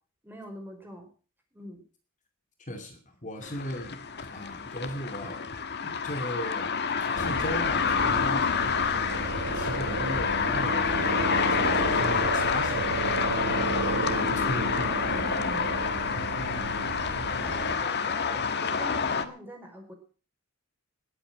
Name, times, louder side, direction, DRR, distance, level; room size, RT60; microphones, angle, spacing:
voice 1, 0.2-1.1 1.5-1.8 8.9-9.2 17.3-19.9, equal, 10° right, 2 dB, 5.1 m, -44 dB
voice 2, 2.6-4.0 4.3-5.4 5.8-6.7 7.0-8.7 9.5-15.7, equal, 35° left, 4 dB, 2.5 m, -37 dB
sound 1, 3.4-19.2, left 6 dB, 50° left, 1.5 m, -28 dB
sound 2, 7.1-17.7, right 2 dB, 60° right, 2.1 m, -33 dB
20.0 x 8.9 x 6.4 m, 0.38 s
head